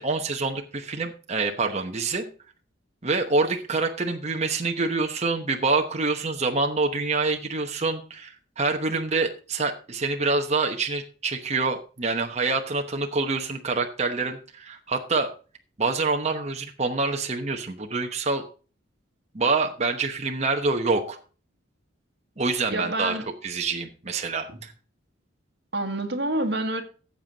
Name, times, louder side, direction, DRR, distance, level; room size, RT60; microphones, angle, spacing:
voice 1, 0.0-2.3 3.0-15.3 15.8-18.5 19.3-21.2 22.4-23.2 23.4-24.7, right 3 dB, 35° right, 1.0 m, -26 dB
voice 2, 22.7-23.3 24.5-24.6 25.7-26.8, right 1 dB, 55° right, 1.8 m, -27 dB
14.5 x 7.6 x 4.0 m
head